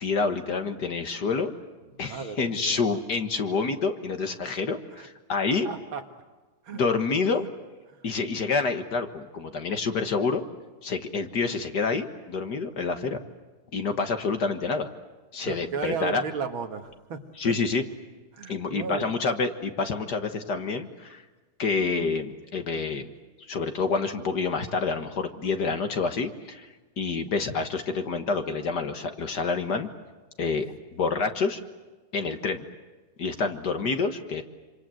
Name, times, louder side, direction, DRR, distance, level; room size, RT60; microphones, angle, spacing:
voice 1, 0.0-1.5 2.0-5.7 6.7-7.5 8.0-10.4 10.8-13.2 13.7-14.9 15.3-16.2 17.4-17.8 18.5-21.2 21.6-23.1 23.5-26.7 27.0-29.9 30.4-30.7 30.9-31.6 32.1-32.7 33.2-34.4, left 4 dB, 50° left, 7 dB, 1.9 m, -28 dB
voice 2, 2.0-2.9 5.0-5.1 5.6-6.0 6.6-6.8 15.4-17.5 18.3-19.1, right 5 dB, 65° right, 6 dB, 2.4 m, -34 dB
26.5 x 26.0 x 7.8 m, 1.3 s
omnidirectional pair, 2.4 m